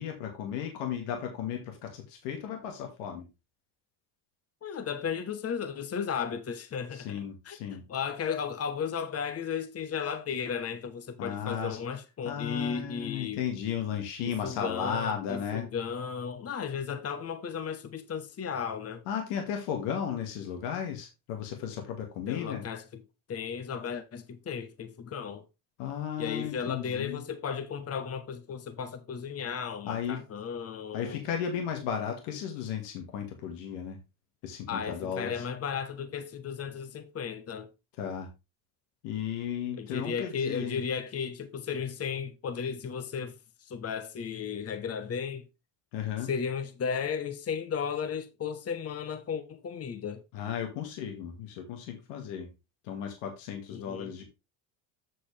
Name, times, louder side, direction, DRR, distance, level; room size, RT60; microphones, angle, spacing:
voice 1, 0.0-3.3 6.9-7.8 11.2-11.8 12.2-15.7 16.8-17.0 19.1-22.6 25.8-27.2 29.8-30.2 30.9-34.0 34.4-35.4 38.0-38.3 39.0-40.8 45.9-46.3 50.3-52.5 52.8-54.2, left 8 dB, 80° left, 2.2 m, -35 dB
voice 2, 4.6-13.4 14.2-19.0 22.3-23.0 23.3-25.4 26.2-31.2 34.7-37.7 39.8-45.5 46.2-50.2 53.7-54.1, left 6 dB, 35° left, 1.2 m, -35 dB
7.8 x 6.6 x 3.4 m
supercardioid pair, 95°, 41 cm